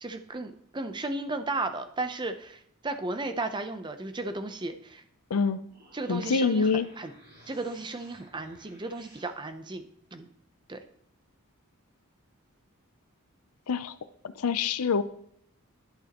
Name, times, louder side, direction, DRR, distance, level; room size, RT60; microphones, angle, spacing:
voice 1, 0.0-5.0 5.9-7.1 7.5-9.8 10.1-10.3 10.7-10.8, right 2 dB, 20° right, 8 dB, 0.6 m, -34 dB
sound 1, 5.5-9.3, right 1 dB, 40° right, 3.0 m, -56 dB
voice 2, 6.1-6.9 13.7-13.9 14.4-15.0, left 5 dB, 90° left, 13 dB, 0.5 m, -25 dB
11.0 x 6.2 x 3.0 m, 0.67 s
head